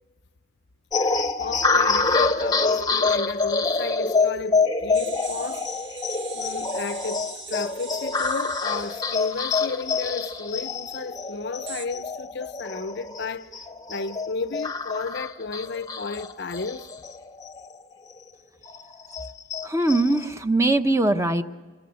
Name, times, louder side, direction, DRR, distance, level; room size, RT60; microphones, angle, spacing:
sound 1, 0.9-17.8 18.2-18.3 18.7-20.3, left 4 dB, 20° left, 0.9 m, -26 dB
voice 1, 1.0-5.6 6.3-13.5 13.9-16.9, left 4 dB, 60° left, 0.7 m, -33 dB
sound 2, 4.9-10.6 11.7-11.9, right 6 dB, 60° right, 1.5 m, -42 dB
voice 2, 19.6-21.4, right 2 dB, 15° right, 0.9 m, -21 dB
28.0 x 21.0 x 6.7 m
head